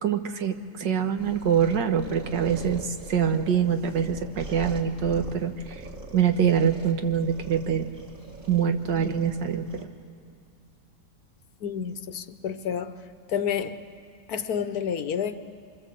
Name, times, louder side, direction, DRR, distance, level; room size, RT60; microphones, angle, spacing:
voice 1, 0.0-5.8 6.1-7.9 8.5-9.9, right 8 dB, 75° right, 6 dB, 1.9 m, -25 dB
sound 1, 1.2-9.8, right 1 dB, 30° right, 2.0 m, -42 dB
voice 2, 11.6-13.0 13.3-13.8 14.3-15.4, left 8 dB, 65° left, 10 dB, 1.2 m, -29 dB
25.5 x 24.5 x 7.6 m, 2.2 s
omnidirectional pair, 1.9 m